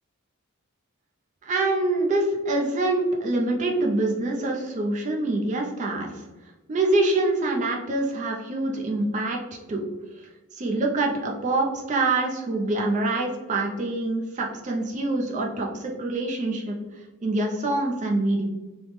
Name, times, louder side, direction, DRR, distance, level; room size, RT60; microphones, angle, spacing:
voice 1, 1.4-6.2 6.7-9.4 9.7-9.8 10.5-16.7 17.2-18.4, right 2 dB, 35° right, 0 dB, 0.3 m, -25 dB
3.2 x 2.0 x 3.0 m, 1.1 s
head